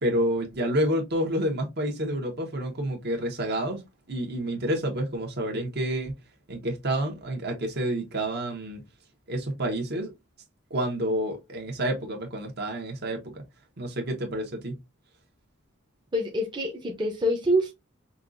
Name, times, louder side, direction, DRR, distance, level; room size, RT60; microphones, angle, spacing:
voice 1, 0.0-3.8 4.1-6.1 6.5-8.8 9.3-10.1 10.7-13.4 13.8-14.8, right 1 dB, 55° right, 1.3 m, -29 dB
voice 2, 16.1-17.7, equal, 25° right, 0.8 m, -26 dB
5.6 x 2.5 x 2.6 m
head